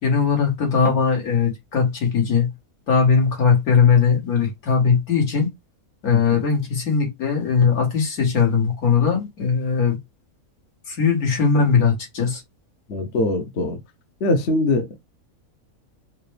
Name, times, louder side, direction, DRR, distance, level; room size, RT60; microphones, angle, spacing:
voice 1, 0.0-2.5 2.9-5.5 6.0-10.0 10.9-12.4, left 6 dB, 85° left, 2.1 m, -19 dB
voice 2, 12.9-13.8 14.2-14.9, left 2 dB, 55° left, 0.9 m, -22 dB
4.8 x 2.2 x 3.2 m
omnidirectional pair, 1.5 m